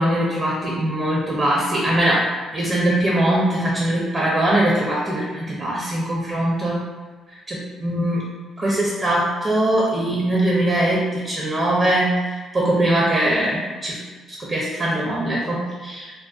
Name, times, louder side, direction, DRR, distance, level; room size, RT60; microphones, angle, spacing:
voice 1, 0.0-2.2 2.5-6.8 7.5-8.2 8.6-14.0 14.4-16.1, right 1 dB, 40° right, -4 dB, 0.5 m, -21 dB
2.6 x 2.0 x 2.3 m, 1.4 s
supercardioid pair, 75°, 0 cm